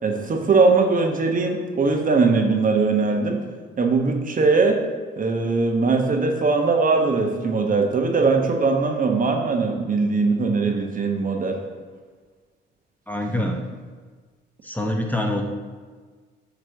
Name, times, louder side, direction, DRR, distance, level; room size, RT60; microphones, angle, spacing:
voice 1, 0.0-3.4 3.8-4.8 5.2-11.6, right 4 dB, 45° right, 3 dB, 1.1 m, -20 dB
voice 2, 13.1-13.6 14.6-15.4, left 1 dB, 10° left, 2 dB, 1.0 m, -25 dB
8.2 x 3.2 x 6.3 m, 1.5 s
cardioid pair, 90°, 20 cm